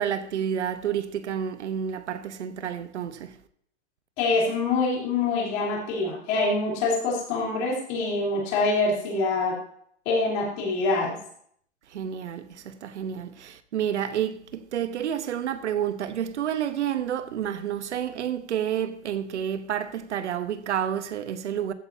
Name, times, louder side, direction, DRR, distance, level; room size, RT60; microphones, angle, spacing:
voice 1, 0.0-3.4 11.9-21.7, right 9 dB, 85° right, 1.0 m, -29 dB
voice 2, 4.2-9.6 10.1-11.2, left 3 dB, 30° left, 3.6 m, -25 dB
14.5 x 8.3 x 2.8 m
hypercardioid pair, 170°, 34 cm